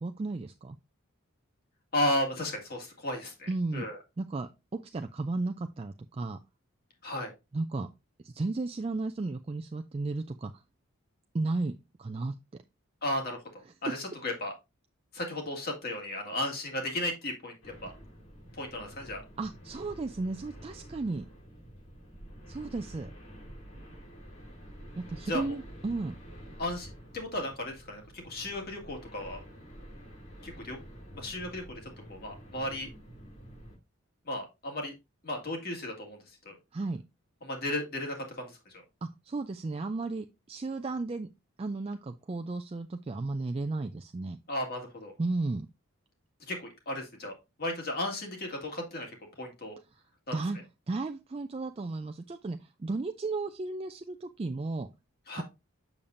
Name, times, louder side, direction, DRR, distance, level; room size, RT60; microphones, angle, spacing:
voice 1, 0.0-0.8 3.5-3.9 4.2-6.4 7.5-7.9 8.2-10.6 11.3-12.3 19.4-21.3 22.5-23.1 25.0-26.2 36.7-37.0 39.0-41.3 41.6-44.4 45.2-45.7 50.3-50.6 50.9-54.9 55.4-55.5, right 3 dB, 25° right, 7 dB, 0.3 m, -34 dB
voice 2, 1.9-4.0 7.0-7.3 13.0-14.5 15.1-17.9 18.5-19.2 25.3-25.6 26.6-29.4 30.4-30.8 31.1-31.8 32.1-32.9 34.3-34.9 35.2-36.5 37.4-38.8 44.5-45.1 46.5-47.3 47.6-49.8 50.3-50.4 55.3-55.4, left 1 dB, 45° left, 2 dB, 2.0 m, -35 dB
sound 1, 17.6-33.8, equal, 80° left, 4.2 m, -49 dB
7.1 x 6.8 x 2.6 m, 0.24 s
head